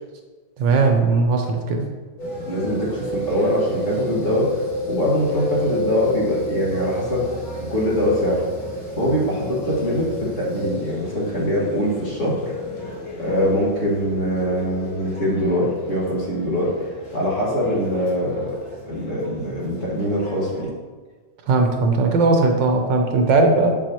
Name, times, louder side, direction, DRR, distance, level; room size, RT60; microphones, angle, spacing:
voice 1, 0.6-1.9 21.5-23.8, right 3 dB, 75° right, 3 dB, 1.5 m, -18 dB
sound 1, 2.2-20.6, left 1 dB, 90° left, 2.5 m, -32 dB
voice 2, 2.5-4.6 4.9-7.3 7.7-8.4 9.0-12.5 13.2-16.9 17.1-18.6 18.9-20.7, equal, 40° left, -6 dB, 2.3 m, -23 dB
8.0 x 7.0 x 3.0 m, 1.4 s
omnidirectional pair, 2.1 m